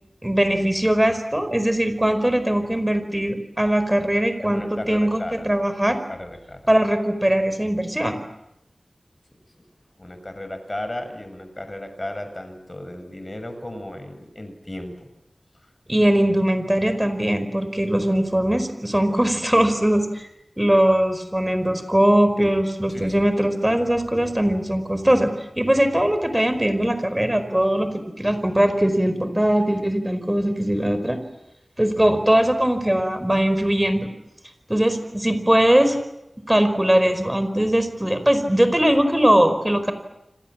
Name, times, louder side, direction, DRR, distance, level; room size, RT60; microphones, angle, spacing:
voice 1, 0.2-4.6 4.9-6.0 6.7-8.2 15.9-20.3 20.6-31.2 31.8-34.1 34.7-36.0 36.5-39.9, right 1 dB, 15° right, 10 dB, 4.8 m, -20 dB
voice 2, 4.4-5.5 5.9-6.6 9.3-9.4 10.0-15.1 22.9-23.3, left 1 dB, 30° left, 8 dB, 6.5 m, -35 dB
29.0 x 26.0 x 7.6 m, 0.89 s
wide cardioid pair, 75°, 0 cm